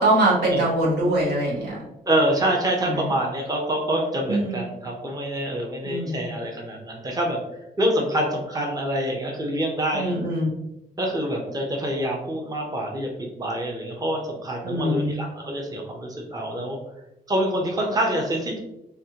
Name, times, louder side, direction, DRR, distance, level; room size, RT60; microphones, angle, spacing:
voice 1, 0.0-1.8 2.8-3.1 4.3-4.6 5.8-6.2 9.9-10.5 14.6-15.2, right 1 dB, 85° right, -5 dB, 1.1 m, -23 dB
voice 2, 2.1-7.4 7.8-10.1 11.0-13.1 13.4-16.8 17.3-18.6, right 1 dB, 20° right, 0 dB, 0.7 m, -26 dB
3.2 x 2.4 x 2.8 m, 0.87 s
cardioid pair, 80°, 16 cm